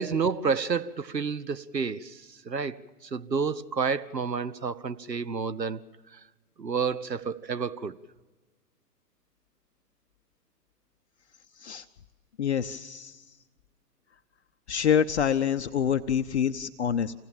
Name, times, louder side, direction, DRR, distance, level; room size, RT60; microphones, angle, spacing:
voice 1, 0.0-5.8 6.1-6.2 6.6-8.0, right 5 dB, 90° right, 0.9 m, -30 dB
voice 2, 12.4-13.2 14.7-17.1, left 8 dB, 45° left, 0.7 m, -26 dB
27.0 x 17.0 x 7.3 m
figure-of-eight pair, 125°, 48 cm